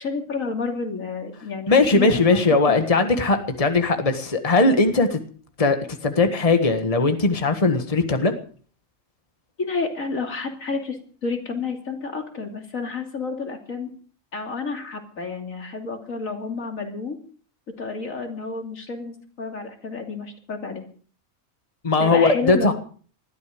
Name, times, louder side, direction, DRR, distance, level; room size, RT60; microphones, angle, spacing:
voice 1, 0.0-2.8 9.6-13.9 14.3-17.2 17.8-20.8 22.0-22.7, left 4 dB, 85° left, 3.3 m, -30 dB
voice 2, 1.7-5.2 5.6-5.8 6.0-8.3 21.8-22.7, left 3 dB, 25° left, 1.7 m, -19 dB
20.0 x 13.5 x 5.1 m
omnidirectional pair, 1.4 m